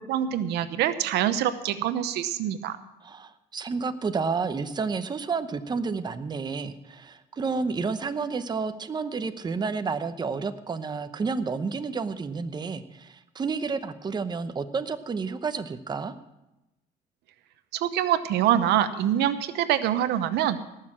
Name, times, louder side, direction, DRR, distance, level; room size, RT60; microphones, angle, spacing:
voice 1, 0.1-2.8 17.7-20.6, right 11 dB, 80° right, 12 dB, 0.9 m, -25 dB
voice 2, 3.0-16.1, right 4 dB, 25° right, 10 dB, 0.8 m, -30 dB
18.0 x 6.6 x 7.4 m, 0.95 s
cardioid pair, 110°, 17 cm